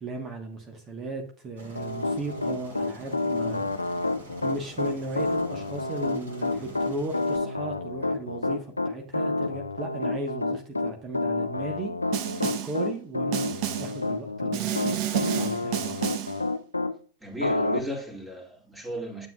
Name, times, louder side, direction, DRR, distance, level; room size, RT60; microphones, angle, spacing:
voice 1, 0.0-4.0 4.4-13.5 13.8-16.0, right 2 dB, 25° right, 1.3 m, -36 dB
Aircraft, 1.6-7.4, right 2 dB, 65° right, 3.1 m, -46 dB
Piano, 1.8-16.9 17.4-17.8, left 2 dB, 80° left, 0.5 m, -28 dB
Snare drum, 12.1-12.8 13.3-14.0 14.5-16.4, right 11 dB, 45° right, 0.9 m, -30 dB
voice 2, 17.2-19.3, equal, 10° right, 2.5 m, -36 dB
9.4 x 7.6 x 2.4 m
figure-of-eight pair, 90°, 0 cm